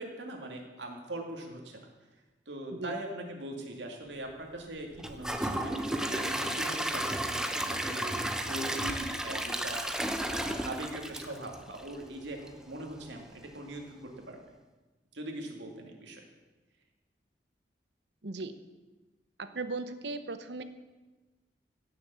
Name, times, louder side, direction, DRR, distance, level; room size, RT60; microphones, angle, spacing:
voice 1, 0.0-1.8 2.5-9.8 10.3-14.6 15.1-16.2, right 1 dB, 85° right, 2 dB, 2.4 m, -41 dB
Gurgling / Toilet flush / Trickle dribble, 5.0-12.1 12.5-12.6 13.0-13.1, right 1 dB, 5° right, 0.8 m, -33 dB
voice 2, 18.2-18.6 19.4-20.6, right 3 dB, 70° right, 11 dB, 0.9 m, -37 dB
16.0 x 7.1 x 6.9 m, 1.2 s
head